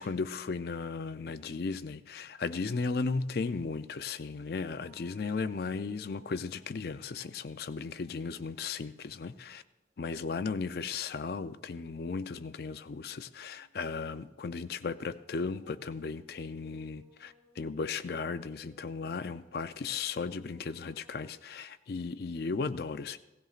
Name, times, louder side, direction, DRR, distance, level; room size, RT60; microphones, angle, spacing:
voice 1, 0.0-9.6 10.0-23.2, left 4 dB, 60° left, 0.4 m, -36 dB
sound 1, 4.7-8.9 9.3-9.6 12.1-21.3, equal, 70° right, 2.5 m, -64 dB
17.0 x 16.0 x 2.5 m
head